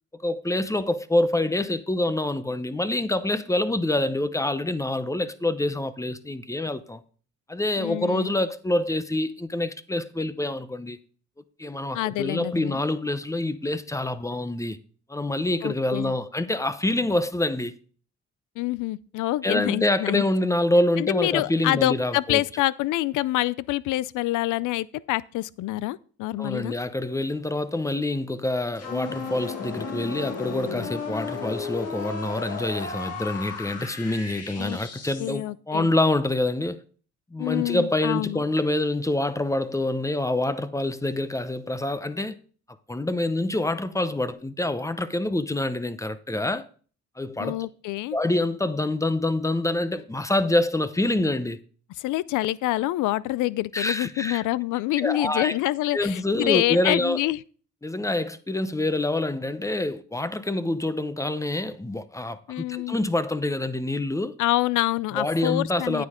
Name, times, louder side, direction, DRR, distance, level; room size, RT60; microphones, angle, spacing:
voice 1, 0.2-7.0 7.5-11.0 11.6-14.8 15.1-17.8 19.4-22.4 26.4-36.8 37.3-42.4 42.9-46.7 47.2-47.6 48.1-51.6 53.7-54.4 55.0-55.6 55.9-57.2 57.8-64.4 65.1-66.1, left 1 dB, 10° left, 0.7 m, -26 dB
voice 2, 7.8-8.3 11.9-12.8 15.6-16.1 18.6-20.3 21.0-26.8 34.6-34.8 35.2-35.9 37.4-38.4 47.4-48.2 52.0-57.4 62.5-63.0 64.4-66.1, left 17 dB, 85° left, 0.5 m, -26 dB
sound 1, 28.8-35.4, left 5 dB, 55° left, 2.1 m, -34 dB
9.5 x 8.3 x 3.7 m
cardioid pair, 90°, 30 cm